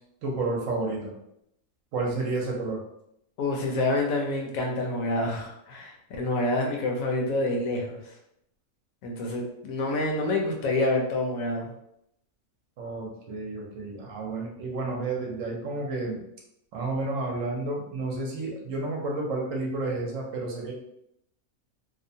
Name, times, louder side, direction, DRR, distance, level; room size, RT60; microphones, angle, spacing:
voice 1, 0.2-1.1 1.9-2.8 12.8-16.2 16.7-20.7, right 3 dB, 70° right, -1 dB, 1.0 m, -31 dB
voice 2, 3.4-8.1 9.0-11.7, left 2 dB, 75° left, 1 dB, 1.0 m, -27 dB
2.8 x 2.1 x 2.6 m, 0.78 s
omnidirectional pair, 1.5 m